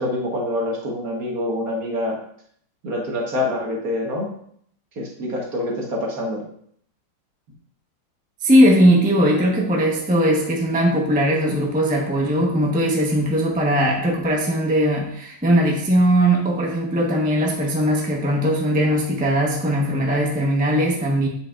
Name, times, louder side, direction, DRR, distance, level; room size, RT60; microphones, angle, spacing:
voice 1, 0.0-2.2 2.8-4.3 5.0-6.4, left 1 dB, 50° right, -1 dB, 1.7 m, -26 dB
voice 2, 8.4-21.3, equal, 5° right, -2 dB, 0.7 m, -19 dB
7.8 x 7.8 x 2.5 m, 0.65 s
omnidirectional pair, 2.2 m